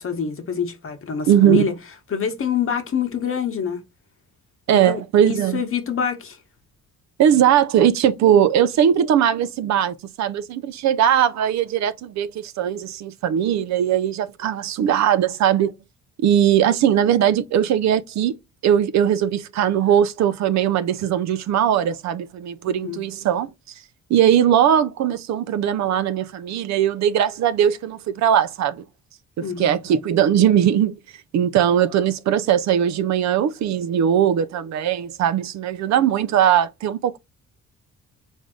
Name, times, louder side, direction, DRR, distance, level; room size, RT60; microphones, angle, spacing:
voice 1, 0.0-1.7 2.1-3.8 4.7-5.0 5.3-6.4 22.7-23.0 29.4-29.7, left 7 dB, 45° left, 1.0 m, -26 dB
voice 2, 1.3-1.7 4.7-5.6 7.2-15.7 16.2-18.4 18.6-23.5 24.1-28.8 29.4-30.9 31.3-37.2, right 9 dB, 65° right, 0.5 m, -19 dB
3.4 x 2.6 x 3.7 m
cardioid pair, 90°, 30 cm